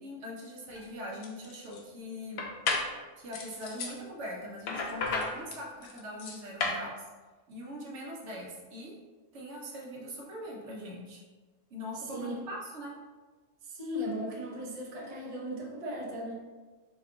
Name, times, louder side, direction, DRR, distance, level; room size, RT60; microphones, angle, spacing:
voice 1, 0.0-2.4 3.2-7.1 7.5-8.9 9.3-11.2 11.7-12.9, left 1 dB, 65° right, -3 dB, 1.1 m, -42 dB
sound 1, 0.7-0.8 1.2-1.8 2.4-2.9 3.3-4.0 4.7-6.8, left 3 dB, 65° left, 0.7 m, -33 dB
voice 2, 11.9-12.3 13.6-16.3, equal, 35° right, -3 dB, 0.6 m, -37 dB
4.4 x 2.3 x 3.7 m, 1.3 s
omnidirectional pair, 1.4 m